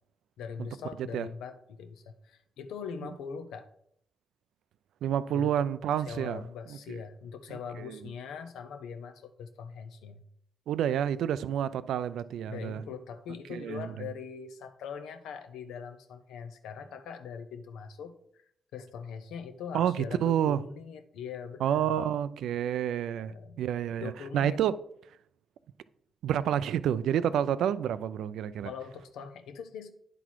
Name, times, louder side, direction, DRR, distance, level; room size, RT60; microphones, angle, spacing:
voice 1, 0.4-3.7 5.3-10.2 12.5-18.4 18.7-21.9 23.2-23.6 24.0-24.6 28.6-29.9, left 6 dB, 80° left, 0.7 m, -42 dB
voice 2, 5.0-6.4 7.8-8.0 10.7-12.8 13.5-14.1 19.7-20.6 21.6-24.7 26.2-28.7, right 10 dB, 75° right, 0.3 m, -29 dB
9.7 x 4.1 x 4.5 m
hypercardioid pair, 40°, 0 cm